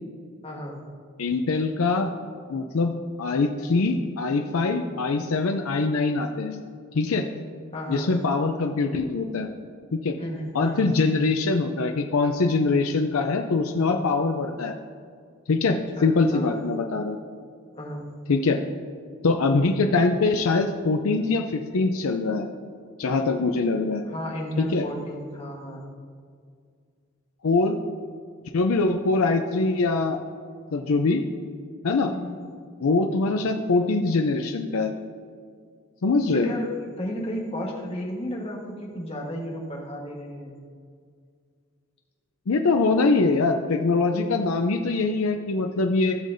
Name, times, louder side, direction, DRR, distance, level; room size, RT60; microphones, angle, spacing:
voice 1, 0.4-0.8 7.7-8.1 10.2-10.8 16.0-16.6 17.7-18.0 24.0-25.8 32.0-32.4 36.3-40.5, equal, 25° left, -1 dB, 1.3 m, -33 dB
voice 2, 1.2-2.1 2.5-6.6 6.9-7.2 7.9-9.5 9.9-10.1 10.5-14.7 15.5-17.2 18.3-18.6 19.2-22.5 23.0-24.0 24.6-24.8 27.4-27.8 28.5-30.2 30.7-31.2 31.8-32.1 32.8-34.9 36.0-36.5 42.5-46.1, left 3 dB, 85° left, 4 dB, 0.5 m, -23 dB
15.5 x 6.6 x 2.6 m, 2.1 s
head